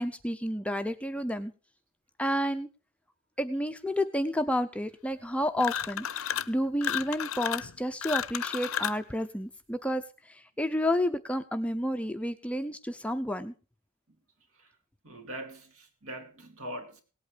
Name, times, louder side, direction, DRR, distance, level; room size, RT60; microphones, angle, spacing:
voice 1, 0.0-1.5 2.2-2.7 3.4-13.5, equal, 5° left, 0.5 m, -30 dB
sound 1, 5.6-6.5 6.8-9.0, left 9 dB, 65° left, 0.6 m, -32 dB
voice 2, 15.0-17.0, right 1 dB, 65° right, 2.6 m, -42 dB
18.0 x 8.5 x 5.0 m
head